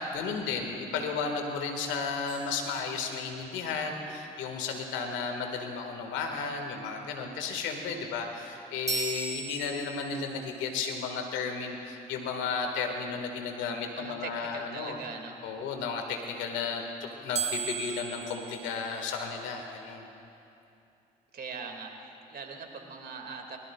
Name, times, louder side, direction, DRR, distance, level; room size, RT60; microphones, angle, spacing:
voice 1, 0.0-15.0 15.4-20.1, left 5 dB, 70° left, 3 dB, 1.9 m, -34 dB
sound 1, 2.3-3.6 8.9-10.4 17.3-19.5, right 6 dB, 35° right, 1.9 m, -37 dB
voice 2, 13.9-15.3 21.3-23.6, right 5 dB, 50° right, 3 dB, 2.3 m, -41 dB
23.5 x 21.5 x 2.4 m, 2.7 s
hypercardioid pair, 50°, 20 cm